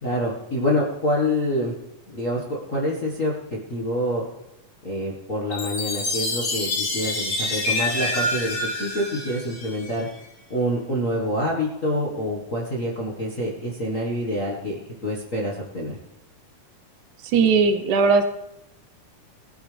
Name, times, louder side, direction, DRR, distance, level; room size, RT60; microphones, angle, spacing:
voice 1, 0.0-1.7 2.1-3.3 3.7-4.2 4.8-10.1 10.5-16.0, equal, 35° left, -4 dB, 1.3 m, -26 dB
Chime, 5.5-10.1, left 2 dB, 65° left, 5.0 m, -27 dB
voice 2, 17.2-18.3, right 4 dB, 75° right, 7 dB, 2.3 m, -18 dB
18.5 x 12.5 x 3.4 m, 0.86 s
omnidirectional pair, 3.7 m